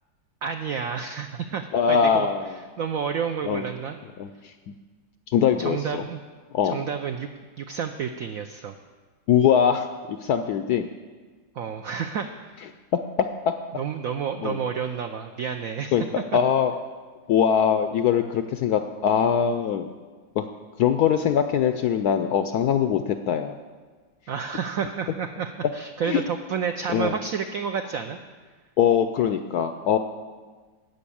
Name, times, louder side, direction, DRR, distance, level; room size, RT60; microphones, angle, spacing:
voice 1, 0.4-2.3 2.8-4.0 5.6-6.2 6.6-7.3 7.6-8.7 11.6-12.3 13.8-16.0 24.3-28.2, right 7 dB, 80° right, 6 dB, 0.7 m, -30 dB
voice 2, 1.7-2.5 3.5-3.6 4.2-4.5 5.3-6.0 6.5-6.8 9.3-10.9 13.2-13.5 14.4-14.6 15.9-16.7 17.3-19.9 20.4-20.5 20.8-23.6 26.0-26.2 26.9-27.2 28.8-30.0, left 8 dB, 75° left, 8 dB, 0.9 m, -22 dB
13.0 x 5.5 x 8.5 m, 1.4 s
omnidirectional pair, 2.1 m